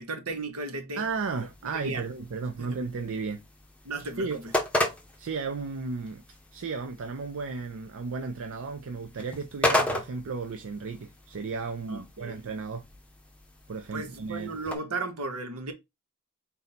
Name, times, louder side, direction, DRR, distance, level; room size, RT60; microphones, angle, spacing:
voice 1, 0.0-1.0 1.4-1.5 1.7-2.1 2.6-2.8 3.8-4.5 11.9-12.4 13.9-15.7, right 3 dB, 75° right, 1.0 m, -35 dB
sound 1, 1.0-14.8, left 1 dB, 5° left, 0.7 m, -35 dB
voice 2, 1.0-3.4 4.2-4.4 5.2-6.2 6.5-12.8 13.7-14.5, right 4 dB, 60° right, 0.5 m, -34 dB
4.0 x 2.7 x 4.1 m
head